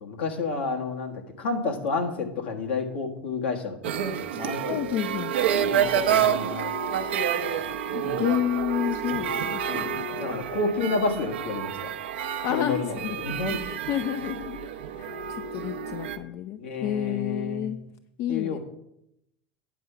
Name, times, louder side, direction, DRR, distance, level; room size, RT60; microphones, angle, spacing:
voice 1, 0.0-4.8 5.7-6.7 7.4-7.6 7.9-8.2 9.1-9.2 9.7-9.9 10.2-11.7 12.5-13.6 16.6-17.7 18.3-18.6, left 3 dB, 80° left, 2 dB, 1.4 m, -30 dB
sound 1, 3.8-16.2, right 8 dB, 80° right, 0.6 m, -29 dB
voice 2, 4.7-5.4 7.9-10.1 12.4-13.2 13.5-14.7 15.0-17.8 18.2-18.6, left 10 dB, 50° left, 11 dB, 0.4 m, -30 dB
9.3 x 5.4 x 5.7 m, 0.81 s
hypercardioid pair, 85°, 6 cm